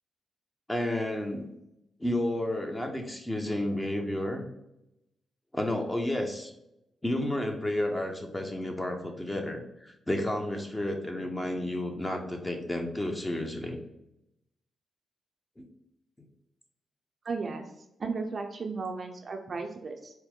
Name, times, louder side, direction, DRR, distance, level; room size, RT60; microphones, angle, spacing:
voice 1, 0.7-1.5 2.0-4.5 5.5-6.5 7.0-13.8 15.6-15.7, left 1 dB, 15° left, 3 dB, 0.8 m, -31 dB
voice 2, 17.2-17.7 18.0-20.1, right 4 dB, 50° right, 3 dB, 0.6 m, -35 dB
4.4 x 2.1 x 3.6 m, 0.86 s
supercardioid pair, 45°, 0 cm